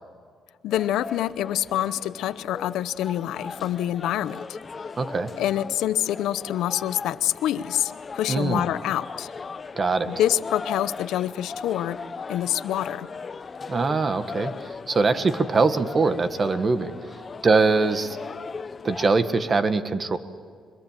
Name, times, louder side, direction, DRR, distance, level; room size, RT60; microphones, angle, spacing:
voice 1, 0.6-4.4 5.4-9.3 10.0-12.0 12.3-13.1, left 12 dB, 85° left, 15 dB, 0.7 m, -26 dB
sound 1, 0.7-19.1, left 4 dB, 35° left, 0.7 m, -38 dB
voice 2, 5.0-5.3 8.3-8.7 9.8-10.1 13.7-17.0 17.4-18.2 18.8-20.2, right 3 dB, 35° right, 10 dB, 1.6 m, -22 dB
24.0 x 22.0 x 7.5 m, 2.1 s
cardioid pair, 90°, 0 cm